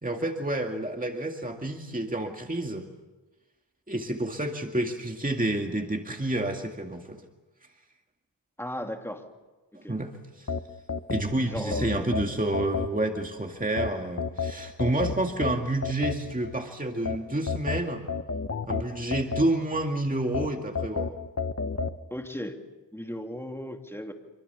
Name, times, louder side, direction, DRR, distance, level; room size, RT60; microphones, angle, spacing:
voice 1, 0.0-2.9 3.9-7.2 9.7-10.5 11.1-18.1 18.7-21.1, right 1 dB, 20° right, 3 dB, 2.2 m, -29 dB
voice 2, 8.6-9.2 9.8-10.0 11.4-12.1 22.1-22.5 22.9-24.1, equal, 5° left, 3 dB, 2.8 m, -36 dB
sound 1, 10.5-13.3 13.8-16.5 17.1-19.8 20.3-22.0, left 4 dB, 35° left, 1.1 m, -31 dB
26.5 x 25.0 x 7.0 m, 1.2 s
wide cardioid pair, 70°, 43 cm